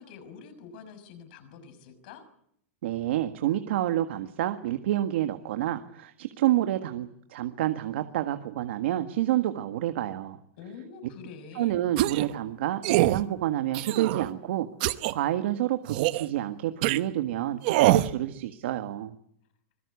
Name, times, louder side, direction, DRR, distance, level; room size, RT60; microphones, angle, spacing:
voice 1, 0.0-2.2 10.6-11.8, left 6 dB, 40° left, 10 dB, 6.1 m, -46 dB
voice 2, 2.8-10.4 11.5-14.7 15.1-19.2, right 13 dB, 55° right, 8 dB, 1.7 m, -28 dB
sound 1, 12.0-12.3 12.8-13.2 13.7-14.3 14.8-15.1 15.9-16.3 16.8-17.0 17.6-18.1, right 16 dB, 40° right, 1.0 m, -24 dB
25.0 x 22.5 x 8.5 m, 0.71 s
supercardioid pair, 175°, 7 cm